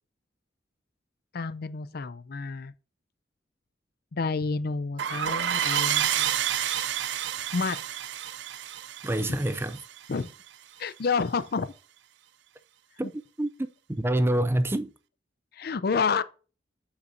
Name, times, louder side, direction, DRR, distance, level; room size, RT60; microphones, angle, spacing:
voice 1, 1.3-2.7 4.1-6.9 7.5-7.8 9.2-9.4 10.1-10.3 10.8-11.7 15.5-16.2, left 4 dB, 55° left, 0.5 m, -30 dB
sound 1, 5.0-10.3, right 10 dB, 70° right, 0.5 m, -29 dB
voice 2, 9.0-9.8 13.0-13.1 13.4-14.9, right 1 dB, 15° right, 0.5 m, -27 dB
7.8 x 5.9 x 2.7 m
head